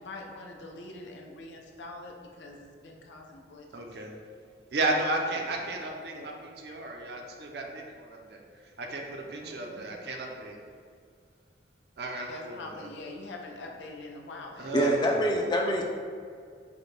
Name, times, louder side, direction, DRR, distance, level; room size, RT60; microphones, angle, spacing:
voice 1, 0.0-3.9 5.4-5.6 5.9-6.3 9.4-9.8 12.3-14.7, left 2 dB, 85° left, 1 dB, 0.5 m, -44 dB
voice 2, 3.7-4.1 4.7-10.7 12.0-12.9 14.6-15.4, right 2 dB, 60° right, 1 dB, 0.5 m, -33 dB
voice 3, 14.7-15.8, equal, 25° left, 1 dB, 0.4 m, -25 dB
4.9 x 2.2 x 3.1 m, 2.1 s
head